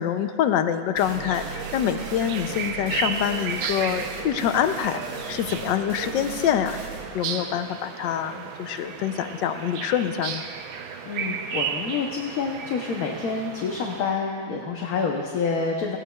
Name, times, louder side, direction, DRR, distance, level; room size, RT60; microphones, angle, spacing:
voice 1, 0.0-5.0 5.3-6.8 7.1-10.4, left 9 dB, 75° left, 9 dB, 1.2 m, -25 dB
sound 1, 1.0-8.4, right 4 dB, 65° right, 1.9 m, -38 dB
sound 2, 1.0-14.0, right 6 dB, 90° right, 1.5 m, -34 dB
voice 2, 11.0-16.0, left 5 dB, 60° left, 1 dB, 1.1 m, -28 dB
18.5 x 16.5 x 2.3 m, 2.1 s
omnidirectional pair, 2.1 m